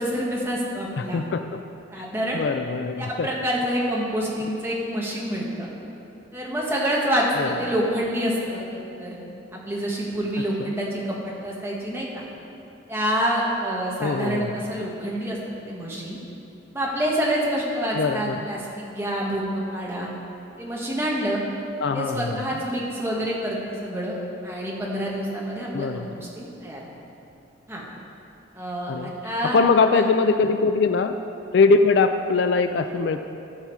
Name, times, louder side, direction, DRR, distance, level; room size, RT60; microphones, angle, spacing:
voice 1, 0.0-1.2 1.9-2.4 3.0-5.7 6.3-8.6 9.0-9.2 9.5-12.2 12.9-15.4 15.7-16.2 16.7-20.1 20.6-21.4 21.9-24.2 24.4-26.8 27.7-27.8 28.5-29.6 29.9-30.0, equal, 10° right, -4 dB, 1.6 m, -27 dB
voice 2, 1.0-1.6 2.3-3.3 7.4-7.5 10.6-10.7 14.0-14.5 17.9-18.5 21.8-22.5 25.7-26.1 28.9-31.2 31.5-33.2, left 4 dB, 60° left, 9 dB, 0.4 m, -22 dB
14.5 x 5.7 x 4.7 m, 2.9 s
head